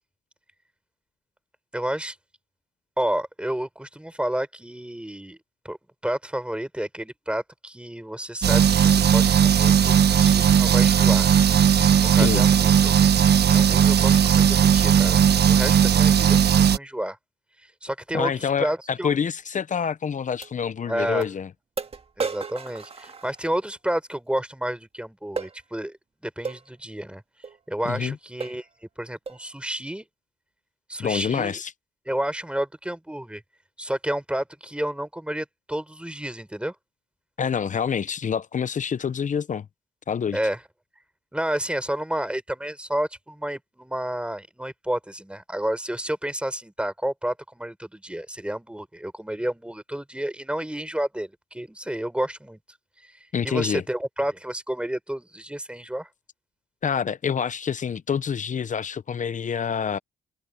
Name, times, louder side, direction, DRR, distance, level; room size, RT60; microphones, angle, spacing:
voice 1, 1.7-2.2 3.0-5.4 5.6-5.8 6.0-11.3 11.9-12.9 13.5-15.2 15.5-17.2 17.8-19.1 20.9-21.3 22.2-26.0 26.2-27.2 27.7-28.7 29.0-30.0 30.9-31.6 32.1-33.4 33.8-36.8 40.3-40.6 41.3-52.6 53.4-56.1, right 1 dB, 5° right, 5.3 m, -30 dB
sound 1, 8.4-16.8, right 8 dB, 55° right, 1.3 m, -17 dB
voice 2, 18.1-21.5 27.9-28.1 31.0-31.7 37.4-39.7 40.1-40.4 53.3-53.8 56.8-60.0, left 7 dB, 40° left, 0.8 m, -27 dB
sound 2, 19.4-19.5 20.4-20.5 21.2-21.3 21.8-23.7 25.4-25.6 26.5-26.7 27.4-27.6 28.0-28.1 28.4-28.7 29.3-29.5, right 4 dB, 30° right, 2.0 m, -34 dB
cardioid pair, 90°, 20 cm